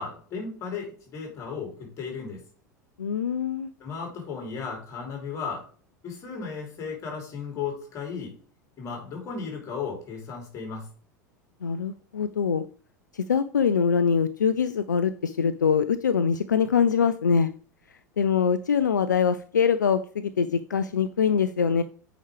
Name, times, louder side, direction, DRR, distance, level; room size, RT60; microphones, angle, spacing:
voice 1, 0.0-2.4 3.8-5.6 6.0-8.3 8.8-10.9, left 5 dB, 30° left, 0 dB, 3.4 m, -35 dB
voice 2, 3.0-3.7 11.6-12.6 13.1-17.5 18.2-21.8, left 6 dB, 75° left, 12 dB, 0.4 m, -23 dB
8.4 x 4.9 x 3.4 m, 0.43 s
figure-of-eight pair, 80°, 10 cm